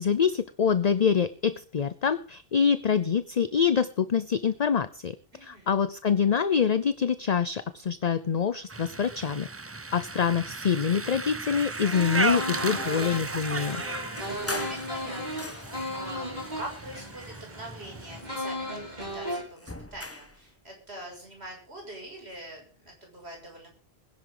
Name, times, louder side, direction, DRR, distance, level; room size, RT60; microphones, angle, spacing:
voice 1, 0.0-5.2 5.4-9.5 9.9-13.8, left 7 dB, 45° left, 14 dB, 0.7 m, -25 dB
voice 2, 5.3-5.8 14.5-16.3 16.5-23.7, right 1 dB, 80° right, 1 dB, 6.7 m, -44 dB
sound 1, 8.7-18.2, right 3 dB, 20° right, 0.4 m, -35 dB
sound 2, 11.8-19.4, equal, 45° right, 5.6 m, -36 dB
sound 3, 14.1-16.0 16.7-17.9 18.2-20.4, left 2 dB, 15° left, 1.0 m, -41 dB
21.0 x 11.0 x 3.9 m, 0.44 s
omnidirectional pair, 1.1 m